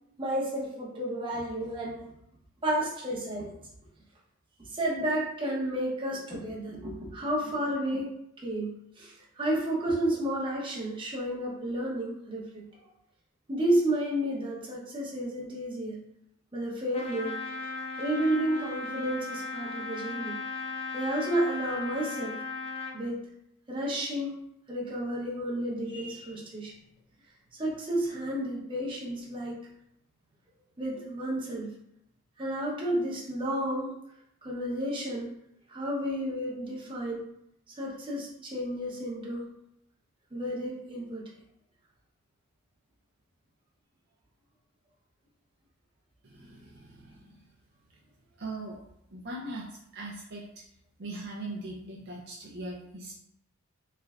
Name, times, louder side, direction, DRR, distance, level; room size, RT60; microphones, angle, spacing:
voice 1, 0.2-2.1 2.6-3.6 4.6-12.7 13.5-16.0 16.5-17.4 18.0-20.4 20.9-22.4 22.9-23.3 23.7-24.3 24.7-26.7 27.5-29.6 30.8-31.7 32.4-33.9 34.4-35.4 35.7-37.2 37.7-39.5 40.3-41.3, right 1 dB, 25° right, -4 dB, 0.8 m, -31 dB
Trumpet, 16.9-23.0, left 3 dB, 25° left, 0.4 m, -37 dB
voice 2, 46.2-47.4 47.9-48.0 48.4-48.8 49.1-50.5 51.0-53.1, right 2 dB, 50° right, -4 dB, 0.5 m, -40 dB
3.3 x 3.2 x 2.4 m, 0.78 s
head